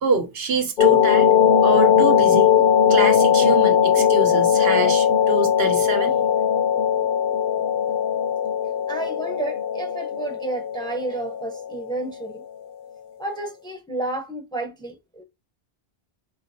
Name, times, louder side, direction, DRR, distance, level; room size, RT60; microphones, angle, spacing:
voice 1, 0.0-1.3 1.6-2.5 2.9-6.2, right 4 dB, 75° right, 1.1 m, -25 dB
sound 1, 0.8-12.3, left 8 dB, 55° left, 0.8 m, -19 dB
voice 2, 8.9-12.4 13.2-15.2, right 2 dB, 5° left, 0.6 m, -31 dB
5.0 x 2.9 x 2.7 m
omnidirectional pair, 1.0 m